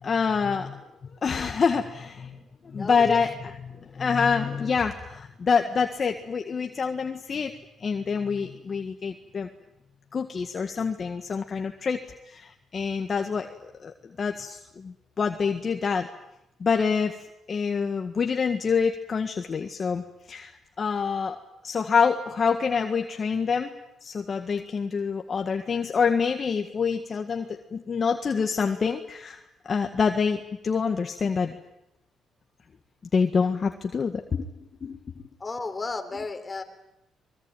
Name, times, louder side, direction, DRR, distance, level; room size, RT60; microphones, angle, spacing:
voice 1, 0.0-0.8 1.2-2.4 2.7-3.5 3.9-7.5 7.8-9.5 10.1-12.0 12.3-13.5 13.8-16.1 16.6-17.2 17.5-21.4 21.6-23.8 24.0-29.4 29.7-31.6 33.1-34.5 34.8-35.3, left 5 dB, 40° left, 5 dB, 1.8 m, -26 dB
voice 2, 2.8-3.3 14.3-14.4 35.4-36.6, left 3 dB, 25° left, 6 dB, 3.8 m, -33 dB
25.0 x 22.0 x 9.1 m, 0.88 s
cardioid pair, 90°, 0 cm